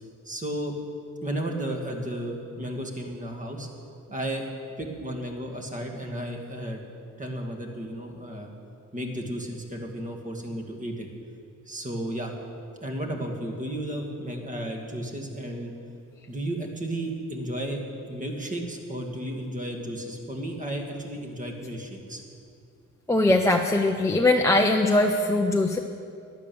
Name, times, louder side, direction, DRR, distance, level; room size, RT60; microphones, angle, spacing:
voice 1, 0.2-0.7 1.2-3.7 4.1-4.5 4.8-6.8 7.2-8.5 8.9-11.1 11.7-12.3 12.8-15.7 16.3-17.8 18.1-22.2, right 1 dB, 25° right, 2 dB, 2.2 m, -33 dB
voice 2, 23.1-25.8, left 2 dB, 10° left, 2 dB, 0.7 m, -21 dB
12.0 x 11.0 x 7.1 m, 2.5 s
cardioid pair, 90°, 30 cm